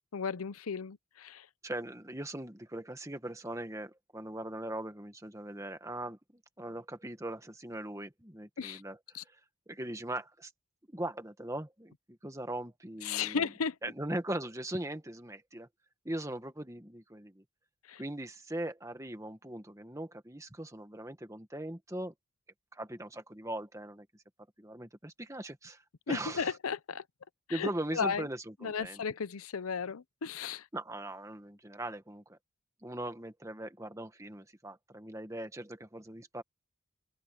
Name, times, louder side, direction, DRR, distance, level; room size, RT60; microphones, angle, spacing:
voice 1, 0.1-1.4 8.6-8.8 9.1-9.2 13.0-13.7 17.9-18.0 26.1-27.0 27.5-28.2 28.6-30.6, left 6 dB, 85° left, 0.7 m, -35 dB
voice 2, 1.6-6.2 6.6-9.4 9.7-10.5 10.9-13.5 13.8-15.7 16.0-17.4 18.0-22.1 22.7-24.1 24.6-25.8 26.1-26.6 27.5-29.0 30.7-32.4 32.8-36.4, right 1 dB, 15° right, 1.5 m, -40 dB
head